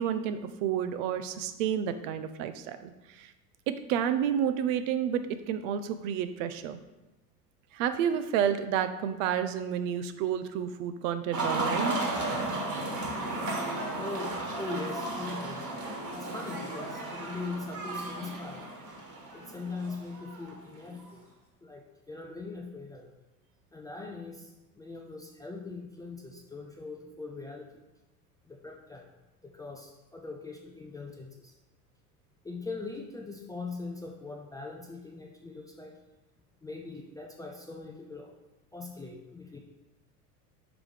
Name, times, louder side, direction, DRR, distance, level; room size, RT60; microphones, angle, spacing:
voice 1, 0.0-3.3 3.7-6.8 7.7-12.0, right 9 dB, 55° right, 10 dB, 0.6 m, -30 dB
sound 1, 11.3-21.1, right 2 dB, 40° right, 1.7 m, -34 dB
voice 2, 14.0-15.6 16.1-18.7 19.3-21.2 21.6-23.1 23.7-27.8 28.5-29.1 29.4-31.5 32.4-35.9 36.6-38.3 38.7-39.6, left 3 dB, 10° left, 0 dB, 0.4 m, -41 dB
6.0 x 4.7 x 3.3 m, 1.0 s
figure-of-eight pair, 75°, 46 cm